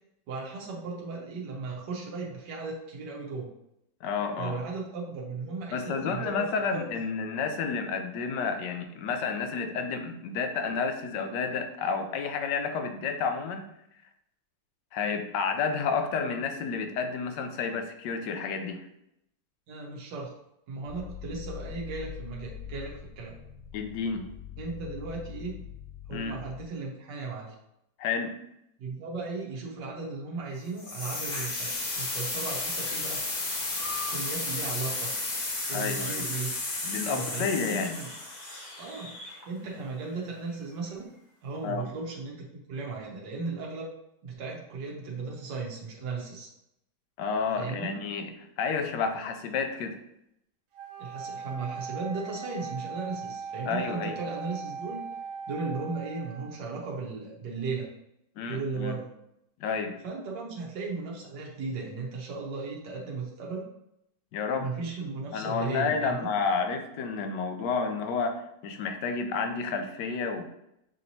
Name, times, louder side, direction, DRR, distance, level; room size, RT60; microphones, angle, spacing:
voice 1, 0.3-3.5 4.4-6.5 6.7-6.8 19.7-20.3 20.7-23.4 24.6-25.6 26.1-27.5 28.8-31.7 32.0-33.2 34.1-35.1 35.7-36.6 37.0-38.1 38.8-39.2 39.5-41.1 41.4-43.9 44.2-46.5 47.6-48.0 51.0-55.0 55.5-57.9 58.5-59.1 60.0-63.7 64.6-66.3, right 4 dB, 90° right, -2 dB, 1.5 m, -36 dB
voice 2, 4.0-4.5 5.7-13.7 14.9-18.9 23.7-24.3 26.1-26.4 28.0-28.4 35.7-36.3 36.8-38.0 41.6-41.9 47.2-50.0 53.7-54.2 58.4-59.0 59.6-60.0 64.3-64.7 65.3-70.5, left 5 dB, 85° left, 6 dB, 1.2 m, -30 dB
sound 1, 20.8-26.6, left 9 dB, 70° left, 2.0 m, -43 dB
sound 2, 30.8-39.7, left 2 dB, 45° left, 0.5 m, -33 dB
Wind instrument woodwind instrument, 50.7-56.6, right 6 dB, 65° right, 0.9 m, -39 dB
6.4 x 2.9 x 2.7 m, 0.80 s
omnidirectional pair, 1.8 m